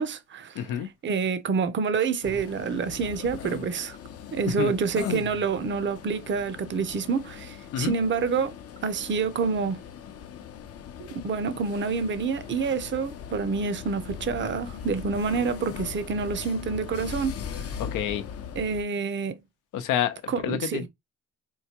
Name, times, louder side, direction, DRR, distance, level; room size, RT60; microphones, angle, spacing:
voice 1, 0.0-0.6 1.0-4.0 4.3-8.5 8.8-9.8 11.0-17.3 18.6-19.4 20.3-20.9, right 5 dB, 40° right, 0.6 m, -27 dB
voice 2, 0.5-0.9 4.4-4.7 7.7-7.9 17.8-18.3 19.7-20.9, left 10 dB, 85° left, 0.7 m, -28 dB
sound 1, 2.2-18.8, left 8 dB, 50° left, 0.6 m, -39 dB
4.6 x 2.2 x 2.9 m
cardioid pair, 90°, 30 cm